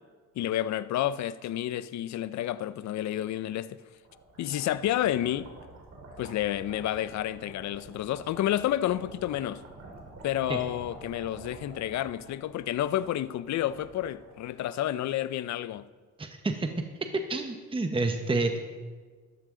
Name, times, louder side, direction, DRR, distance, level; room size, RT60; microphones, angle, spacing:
voice 1, 0.4-3.8 4.4-5.5 6.2-9.6 10.2-15.8, left 12 dB, 65° left, 0.6 m, -30 dB
sound 1, 3.7-14.9, right 2 dB, 60° right, 3.5 m, -48 dB
voice 2, 16.2-16.7 17.3-18.6, right 3 dB, 15° right, 1.1 m, -29 dB
13.5 x 12.5 x 3.8 m
cardioid pair, 90°, 30 cm